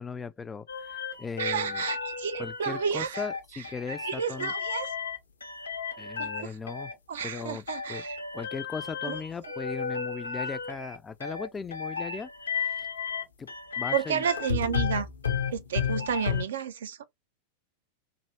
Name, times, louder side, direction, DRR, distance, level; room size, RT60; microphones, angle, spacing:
voice 1, 0.0-1.8 2.4-4.5 6.0-6.9 7.2-7.6 7.9-8.0 8.3-12.3 12.6-12.9 13.4-13.5 13.8-14.2, left 5 dB, 15° left, 0.3 m, -38 dB
sound 1, 0.7-16.4, left 6 dB, 75° left, 0.6 m, -33 dB
voice 2, 1.4-3.3 3.5-4.9 6.2-6.6 7.1-8.2 9.0-9.2 13.9-15.1 15.5-17.0, right 7 dB, 60° right, 0.4 m, -31 dB
3.0 x 2.6 x 2.6 m
figure-of-eight pair, 90°, 0 cm